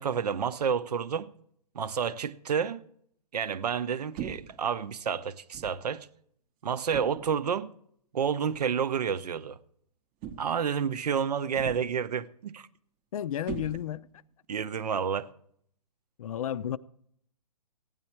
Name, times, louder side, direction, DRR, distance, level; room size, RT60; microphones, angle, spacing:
voice 1, 0.0-1.3 1.7-2.8 3.3-6.1 6.6-7.7 8.1-9.6 10.4-12.7 14.5-15.3, right 7 dB, 80° right, 0.7 m, -30 dB
sound 1, 4.2-4.6 5.5-5.9 6.9-7.4 8.5-8.7 10.2-10.7 11.6-12.1 13.5-14.2, right 8 dB, 25° right, 0.7 m, -40 dB
voice 2, 13.1-14.1 16.2-16.8, left 10 dB, 60° left, 0.5 m, -32 dB
14.5 x 9.5 x 4.4 m
hypercardioid pair, 140°, 20 cm